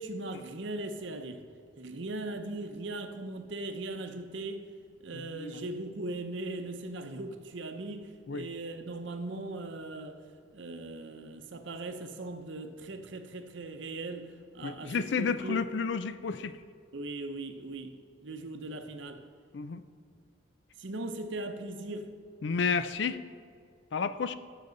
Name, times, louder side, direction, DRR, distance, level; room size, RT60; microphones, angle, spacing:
voice 1, 0.0-1.4 1.8-4.7 5.0-10.2 10.5-15.7 16.9-19.2 20.8-22.1, right 2 dB, 65° right, 0.8 m, -39 dB
voice 2, 5.1-5.6 8.3-8.5 14.6-16.6 19.5-19.8 22.4-23.2 23.9-24.3, left 5 dB, 60° left, 0.4 m, -31 dB
15.5 x 6.7 x 3.9 m
head